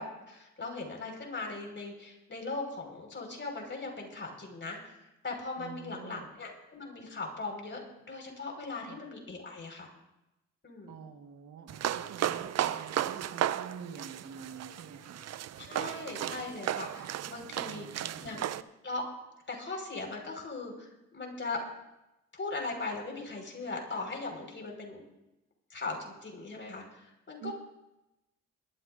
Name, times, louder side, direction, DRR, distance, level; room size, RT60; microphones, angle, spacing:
voice 1, 0.0-9.9 10.6-10.9 15.6-18.6 18.8-19.0 19.5-21.6 22.3-25.0 25.7-27.5, left 3 dB, 40° left, 1 dB, 4.8 m, -39 dB
voice 2, 5.6-6.3 8.8-9.0 10.9-15.2 17.6-18.3 27.4-27.5, right 7 dB, 80° right, 5 dB, 1.5 m, -47 dB
sound 1, 11.7-18.6, right 11 dB, 60° right, 0.5 m, -34 dB
21.5 x 13.0 x 2.6 m, 0.93 s
cardioid pair, 65°, 30 cm